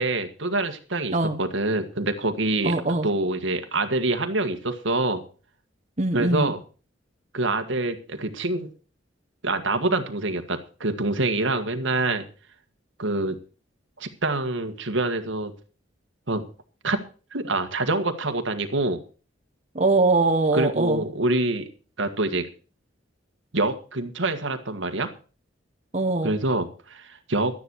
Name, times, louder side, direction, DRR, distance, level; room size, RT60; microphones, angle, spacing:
voice 1, 0.0-2.7 3.0-5.2 6.1-6.6 7.3-8.7 9.4-12.2 13.0-13.4 14.0-15.5 16.3-16.4 16.8-17.0 17.3-19.0 20.5-21.7 22.0-22.5 23.5-25.1 26.2-27.5, right 2 dB, 80° right, 7 dB, 1.7 m, -26 dB
voice 2, 2.6-3.1 6.0-6.5 19.7-21.0 25.9-26.3, right 2 dB, 35° right, 5 dB, 1.4 m, -22 dB
12.5 x 10.0 x 6.4 m, 0.37 s
head